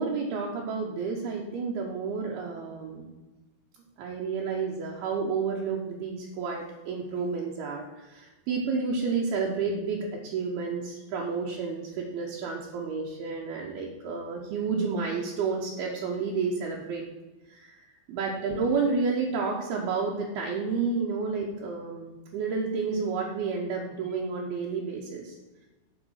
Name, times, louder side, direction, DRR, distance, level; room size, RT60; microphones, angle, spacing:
voice 1, 0.0-3.1 4.0-17.0 17.5-17.8 18.1-25.4, right 4 dB, 75° right, -1 dB, 2.3 m, -30 dB
10.5 x 5.2 x 6.4 m, 1.2 s
omnidirectional pair, 5.7 m